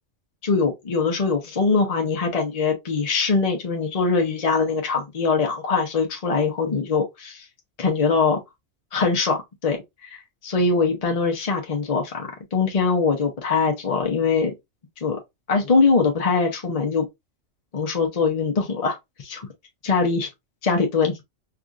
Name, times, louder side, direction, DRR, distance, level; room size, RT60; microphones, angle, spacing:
voice 1, 0.4-7.4 7.8-8.4 8.9-9.8 10.0-14.5 15.0-15.2 15.5-17.1 17.7-19.5 19.8-20.3 20.6-21.2, left 4 dB, 40° left, 0.6 m, -22 dB
4.7 x 2.4 x 2.4 m
omnidirectional pair, 1.3 m